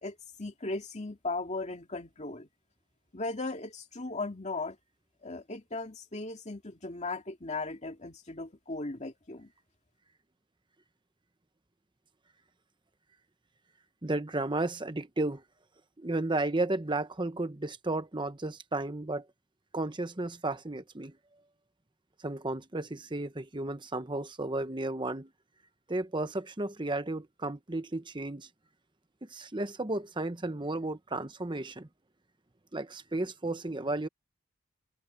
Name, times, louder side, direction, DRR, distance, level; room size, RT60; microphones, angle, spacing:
voice 1, 0.0-2.5 3.1-4.8 5.2-9.5, left 3 dB, 35° left, 2.4 m, -37 dB
voice 2, 14.0-15.4 16.0-19.2 19.7-21.1 22.2-25.3 25.9-28.5 29.2-31.9 32.7-34.1, right 2 dB, 25° right, 1.0 m, -33 dB
head